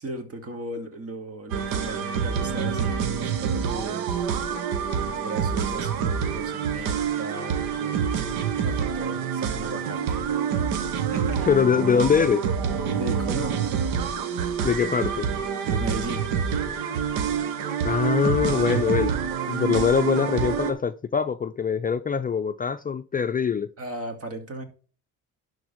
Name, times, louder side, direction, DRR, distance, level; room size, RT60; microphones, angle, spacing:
voice 1, 0.0-4.2 5.1-8.2 8.6-10.1 10.9-11.6 12.9-13.8 15.6-16.3 18.4-18.9 23.8-24.6, right 2 dB, 45° right, 2.4 m, -36 dB
sound 1, 1.5-20.7, right 7 dB, 80° right, 1.3 m, -27 dB
voice 2, 11.5-12.4 14.6-15.3 17.8-19.1 19.5-23.7, left 6 dB, 25° left, 0.5 m, -23 dB
11.5 x 3.9 x 5.1 m
supercardioid pair, 60°, 34 cm